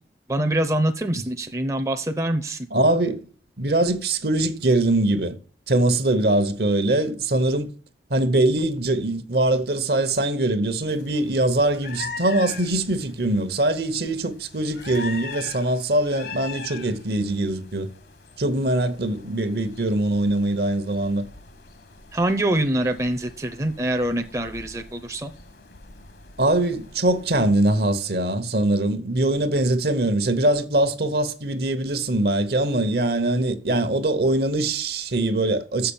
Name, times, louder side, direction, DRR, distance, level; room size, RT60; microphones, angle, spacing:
voice 1, 0.3-2.7 22.1-25.3, right 1 dB, 15° right, 0.6 m, -24 dB
voice 2, 2.7-3.2 3.6-5.4 5.7-7.7 8.1-17.9 18.4-21.2 26.4-35.9, right 1 dB, 65° right, 1.0 m, -22 dB
sound 1, 10.9-27.8, left 4 dB, 65° left, 1.2 m, -42 dB
7.0 x 5.8 x 7.0 m
head